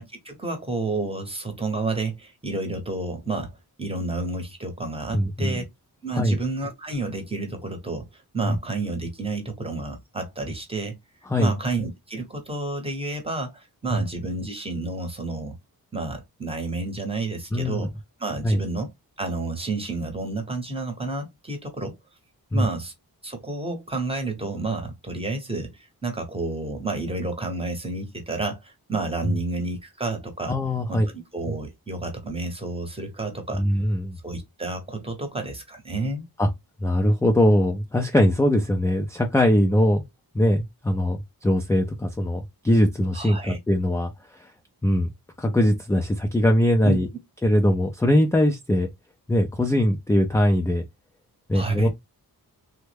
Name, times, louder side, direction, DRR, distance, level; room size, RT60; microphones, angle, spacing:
voice 1, 0.0-3.5 3.8-5.7 6.0-11.0 11.4-15.6 15.9-17.9 18.2-18.9 19.2-21.9 22.5-22.9 23.2-30.6 30.9-33.6 34.2-36.2 43.1-43.6 46.8-47.0 51.5-51.9, right 3 dB, 15° right, 0.8 m, -30 dB
voice 2, 5.1-5.6 6.1-6.4 8.4-8.6 11.3-11.5 13.9-14.0 17.5-17.9 18.4-18.6 22.5-22.7 30.5-31.1 33.5-34.2 36.4-36.5 36.8-40.0 40.3-44.5 44.8-45.1 45.4-47.1 47.4-48.9 49.3-50.8 51.5-51.9, left 1 dB, 10° left, 0.3 m, -21 dB
3.3 x 2.1 x 3.2 m
wide cardioid pair, 150°, 38 cm